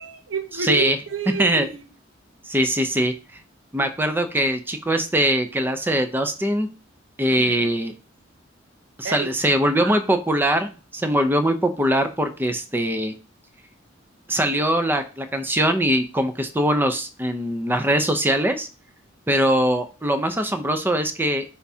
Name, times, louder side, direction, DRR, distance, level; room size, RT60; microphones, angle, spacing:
voice 1, 0.0-1.8 7.3-7.7 9.0-9.3 9.7-10.0, right 5 dB, 80° right, 0.8 m, -30 dB
voice 2, 0.6-1.0 1.4-1.7 2.5-3.1 3.7-6.7 7.2-7.9 9.0-13.1 14.3-18.7 19.3-21.4, right 1 dB, 10° right, 0.7 m, -22 dB
10.5 x 3.5 x 2.8 m
head